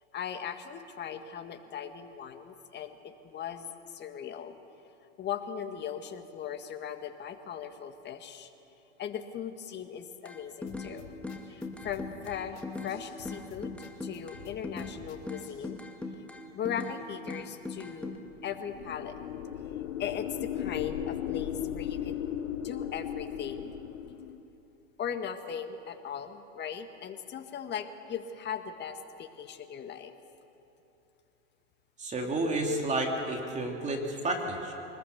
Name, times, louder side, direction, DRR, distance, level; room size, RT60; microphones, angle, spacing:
voice 1, 0.1-4.5 5.2-8.5 9.0-11.1 11.5-12.6 12.8-13.7 14.0-15.8 16.5-18.1 18.4-19.2 20.0-22.3 22.6-23.7 25.0-30.1, left 8 dB, 30° left, 7 dB, 1.7 m, -38 dB
sound 1, 10.3-10.9 11.2-13.0 13.3-15.0 15.3-17.0 17.3-18.2, left 3 dB, 5° left, 1.9 m, -39 dB
sound 2, 10.7-15.7, left 7 dB, 55° left, 3.6 m, -51 dB
sound 3, 18.3-24.4, left 10 dB, 75° left, 1.3 m, -36 dB
voice 2, 32.0-34.7, right 2 dB, 20° right, 1 dB, 2.9 m, -31 dB
24.0 x 20.5 x 6.9 m, 2.9 s
hypercardioid pair, 115°, 35 cm